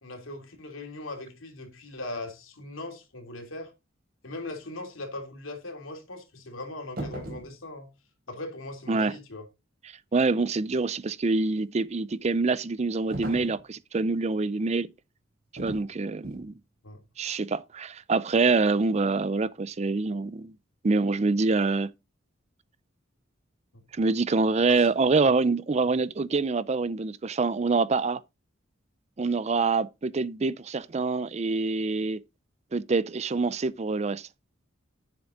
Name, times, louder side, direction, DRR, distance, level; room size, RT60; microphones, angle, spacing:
voice 1, 0.0-3.7 4.2-7.9 8.3-9.5 16.8-17.0 23.7-23.8 24.7-24.9 25.3-25.4, left 2 dB, 85° left, 2.9 m, -39 dB
sound 1, 7.0-7.5 13.1-13.6 15.6-15.9 16.2-16.5, right 1 dB, 50° right, 3.7 m, -36 dB
voice 2, 10.1-14.9 15.6-16.5 17.2-20.5 20.8-21.9 24.0-28.2 29.2-32.2 32.7-34.3, right 3 dB, 35° right, 0.5 m, -25 dB
9.6 x 7.2 x 3.8 m
head